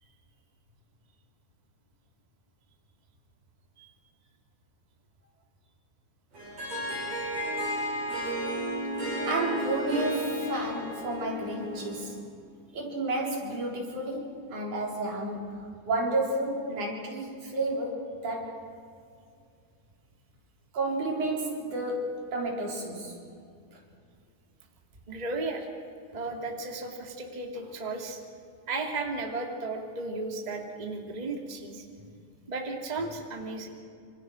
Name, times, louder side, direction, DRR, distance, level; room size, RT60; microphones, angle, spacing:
Harp, 6.3-12.1, equal, 55° right, 9.2 m, -32 dB
voice 1, 9.3-12.3 12.7-18.7 20.7-23.2 23.7-23.8, right 2 dB, 70° right, -1 dB, 5.3 m, -31 dB
voice 2, 25.1-25.7 26.1-28.2 28.7-31.8 32.5-33.7, right 3 dB, 15° right, 2 dB, 2.1 m, -34 dB
26.5 x 26.5 x 6.3 m, 2.4 s
omnidirectional pair, 3.6 m